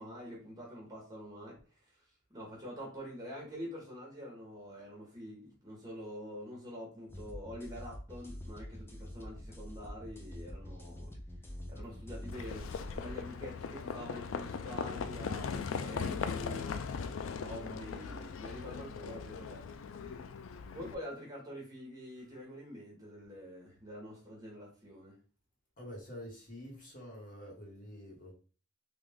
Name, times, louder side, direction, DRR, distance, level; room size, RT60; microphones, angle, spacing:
voice 1, 0.0-2.0 2.3-11.1 11.7-12.7 12.9-16.7 17.4-19.6 20.7-25.2, equal, 20° right, -3 dB, 1.2 m, -46 dB
sound 1, 7.1-13.1, equal, 10° left, 0.4 m, -46 dB
Livestock farm animals working animals, 12.3-20.9, left 5 dB, 80° left, 0.4 m, -39 dB
voice 2, 25.8-28.3, equal, 40° left, -3 dB, 1.3 m, -47 dB
3.3 x 2.5 x 3.5 m, 0.38 s
head